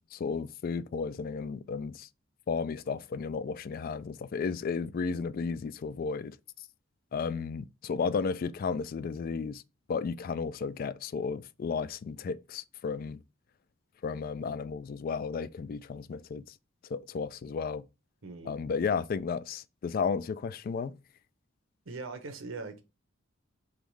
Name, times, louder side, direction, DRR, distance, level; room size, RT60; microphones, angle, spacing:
voice 1, 0.0-2.1 2.5-6.4 7.1-9.6 9.9-13.2 14.0-16.4 16.9-17.8 18.5-21.0, left 5 dB, 45° left, 0.3 m, -33 dB
voice 2, 18.2-18.6 21.8-22.8, right 3 dB, 85° right, 1.0 m, -41 dB
3.7 x 3.0 x 4.7 m
head